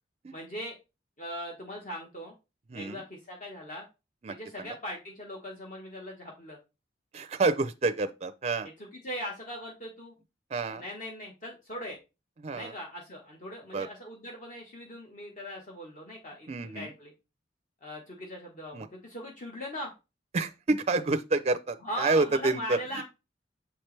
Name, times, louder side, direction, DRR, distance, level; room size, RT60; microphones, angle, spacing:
voice 1, 0.3-0.8 1.2-2.3 2.7-3.9 4.3-6.6 8.6-10.1 10.8-12.0 12.5-17.1 17.8-19.9 21.8-23.0, equal, 45° left, 1.2 m, -40 dB
voice 2, 7.1-8.7 10.5-10.8 12.4-12.7 13.7-13.9 16.5-16.9 18.7-18.9 20.3-23.0, right 3 dB, 35° right, 0.4 m, -28 dB
7.0 x 4.5 x 3.2 m
head